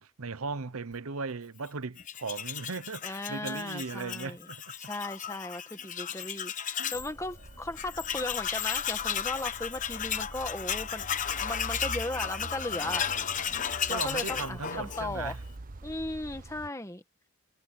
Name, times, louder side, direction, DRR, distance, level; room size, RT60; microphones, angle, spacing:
voice 1, 0.0-4.7 6.8-7.0 13.9-15.4, right 4 dB, 85° right, 0.9 m, -37 dB
Tools, 2.0-7.1 7.4-7.5 7.8-15.4, left 8 dB, 35° left, 0.9 m, -34 dB
voice 2, 3.0-4.5 4.8-11.1 11.4-13.1 13.9-15.3 15.8-17.0, left 2 dB, 15° left, 1.5 m, -36 dB
sound 1, 6.9-16.7, right 2 dB, 40° right, 0.9 m, -45 dB
head